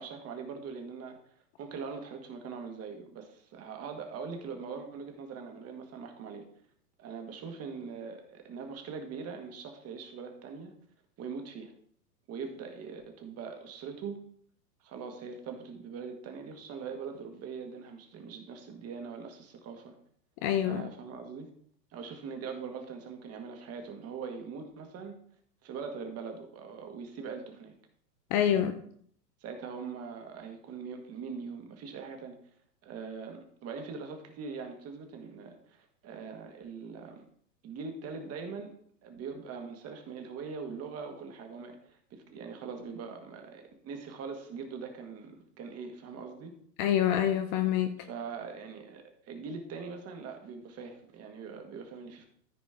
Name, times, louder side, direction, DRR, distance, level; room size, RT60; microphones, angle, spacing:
voice 1, 0.0-6.5 7.0-10.7 11.2-11.7 12.3-14.3 14.8-20.0 20.6-21.5 21.9-25.2 25.6-27.8 29.4-32.4 32.8-37.2 37.6-38.7 39.0-46.5 48.1-52.3, right 5 dB, 30° right, 1.9 m, -42 dB
voice 2, 20.4-20.9 28.3-28.8 46.8-47.9, left 10 dB, 30° left, 0.6 m, -26 dB
14.0 x 5.0 x 3.7 m
figure-of-eight pair, 100°, 49 cm